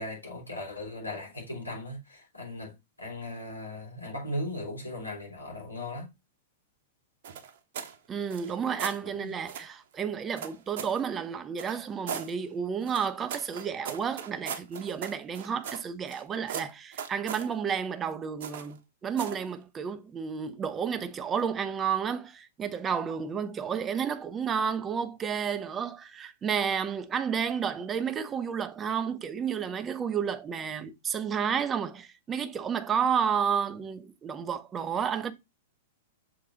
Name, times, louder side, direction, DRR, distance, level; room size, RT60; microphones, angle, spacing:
voice 1, 0.0-6.1 9.2-9.3, left 1 dB, 80° left, 3.1 m, -38 dB
sound 1, 7.2-8.0 8.3-9.0 9.5-9.7 10.4-11.0 11.6-12.3 12.9-16.2 16.5-17.5 18.4-18.8 19.2-19.5, right 8 dB, 55° right, 1.0 m, -38 dB
voice 2, 8.1-35.3, right 7 dB, 20° right, 0.7 m, -31 dB
6.6 x 3.9 x 3.9 m
figure-of-eight pair, 100°, 0 cm